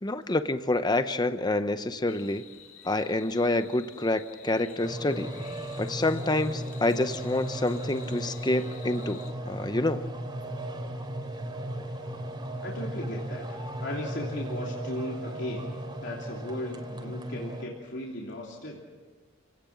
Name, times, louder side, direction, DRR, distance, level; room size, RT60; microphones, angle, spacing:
voice 1, 0.0-2.4 2.8-5.3 5.8-10.0, left 2 dB, 20° left, 10 dB, 0.7 m, -27 dB
sound 1, 2.1-9.3, left 7 dB, 85° left, 2.2 m, -50 dB
sound 2, 4.8-17.6, right 1 dB, 25° right, 3.0 m, -36 dB
voice 2, 12.6-18.8, left 1 dB, 60° left, -3 dB, 3.2 m, -37 dB
28.5 x 18.0 x 7.4 m, 1.4 s
head